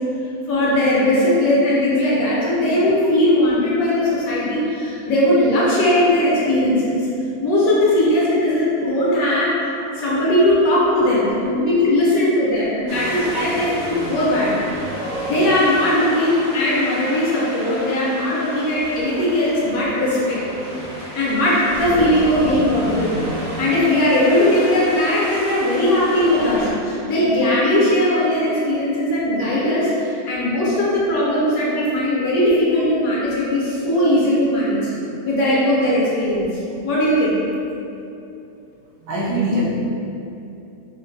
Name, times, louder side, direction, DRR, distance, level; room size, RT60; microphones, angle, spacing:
voice 1, 0.5-6.9 7.4-9.5 9.9-14.6 15.3-20.4 21.1-34.9 35.2-37.4, left 1 dB, 65° left, -7 dB, 1.2 m, -19 dB
Wind, 12.9-26.7, right 1 dB, 50° right, 0.9 m, -31 dB
voice 2, 13.2-13.5 14.5-14.6 39.0-39.7, right 1 dB, 80° right, -8 dB, 1.3 m, -24 dB
4.3 x 2.1 x 2.6 m, 2.8 s
omnidirectional pair, 1.7 m